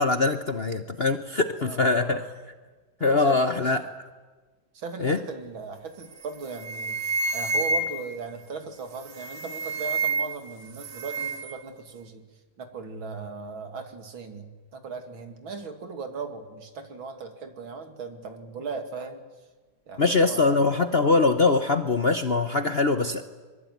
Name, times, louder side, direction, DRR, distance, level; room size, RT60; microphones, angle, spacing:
voice 1, 0.0-2.2 3.0-4.1 5.0-5.2 20.0-23.2, left 3 dB, 40° left, 8 dB, 0.9 m, -23 dB
voice 2, 1.6-2.3 3.0-3.7 4.7-12.2 12.6-19.2 19.9-20.4, right 4 dB, 80° right, 6 dB, 3.2 m, -38 dB
sound 1, 6.0-6.3 6.5-8.2 9.0-10.5 10.7-11.5, right 3 dB, 60° right, 2.2 m, -29 dB
24.0 x 23.0 x 9.4 m, 1.3 s
omnidirectional pair, 2.2 m